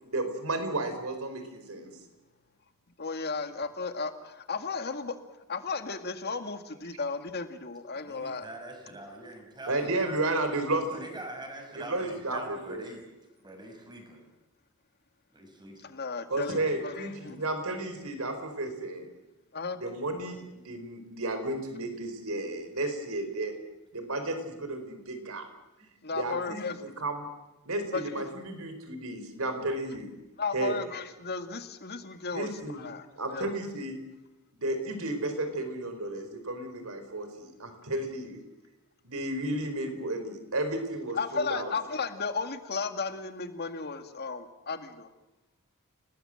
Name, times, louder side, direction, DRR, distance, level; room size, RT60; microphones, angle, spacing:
voice 1, 0.0-1.9 9.7-10.9 11.7-12.8 16.3-19.1 19.8-23.5 23.9-25.4 26.1-27.3 27.6-30.1 30.5-30.8 32.3-32.8 33.2-34.0 34.5-38.4 39.0-41.7, right 2 dB, 70° right, 8 dB, 4.6 m, -33 dB
voice 2, 3.0-5.1 5.5-8.5 15.9-17.4 19.5-19.8 26.0-26.7 27.9-28.2 30.4-33.0 33.3-33.6 41.2-45.1, left 4 dB, 50° left, 8 dB, 2.0 m, -34 dB
voice 3, 7.9-10.2 10.9-13.0 13.4-14.2 15.3-15.9, right 1 dB, 20° right, 3 dB, 6.0 m, -44 dB
30.0 x 19.0 x 7.8 m, 0.96 s
head